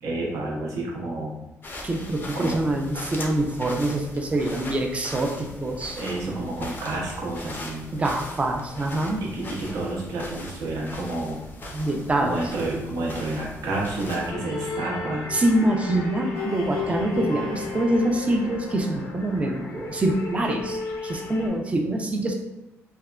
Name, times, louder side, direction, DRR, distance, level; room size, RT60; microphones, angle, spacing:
voice 1, 0.0-1.4 2.3-2.6 6.0-7.9 9.3-11.4 12.2-15.3, right 2 dB, 85° right, -3 dB, 0.8 m, -30 dB
sound 1, 1.6-14.3, left 2 dB, 40° left, 0.5 m, -39 dB
voice 2, 1.8-6.0 7.9-9.2 11.7-12.4 15.3-22.4, right 1 dB, 25° right, 2 dB, 0.4 m, -25 dB
sound 2, 14.2-21.5, left 4 dB, 80° left, 0.6 m, -34 dB
3.3 x 2.1 x 2.3 m, 0.94 s
cardioid pair, 110°, 5 cm